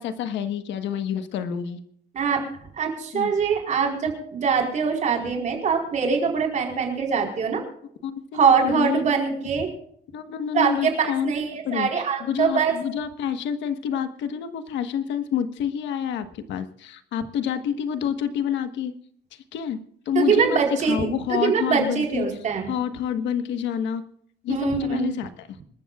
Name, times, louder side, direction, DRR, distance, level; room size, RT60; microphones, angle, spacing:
voice 1, 0.0-1.8 3.1-3.3 8.0-8.2 8.6-9.0 10.1-11.3 11.6-18.9 19.3-19.8 20.0-22.3 22.7-24.0 24.4-25.5, left 8 dB, 85° left, 9 dB, 1.4 m, -28 dB
voice 2, 2.8-7.6 8.3-9.7 10.5-12.7 20.1-22.7 24.5-25.1, right 6 dB, 40° right, 1 dB, 4.5 m, -23 dB
26.5 x 13.5 x 2.4 m, 0.67 s
cardioid pair, 165°, 18 cm